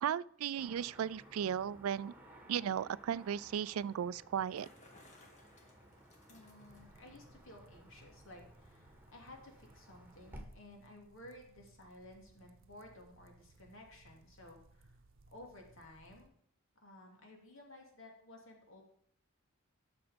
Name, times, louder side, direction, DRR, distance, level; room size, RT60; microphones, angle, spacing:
voice 1, 0.0-2.1 2.5-4.7, right 8 dB, 85° right, 0.3 m, -36 dB
Car passing by / Traffic noise roadway noise, 0.6-10.4, right 1 dB, 10° right, 1.8 m, -58 dB
Bicycle, 4.2-7.0, left 2 dB, 35° left, 2.3 m, -62 dB
voice 2, 6.3-14.9 15.3-16.3 16.8-18.8, left 1 dB, 65° left, 2.8 m, -55 dB
sound 1, 6.7-16.3, right 2 dB, 65° right, 0.8 m, -64 dB
12.0 x 7.0 x 5.2 m
head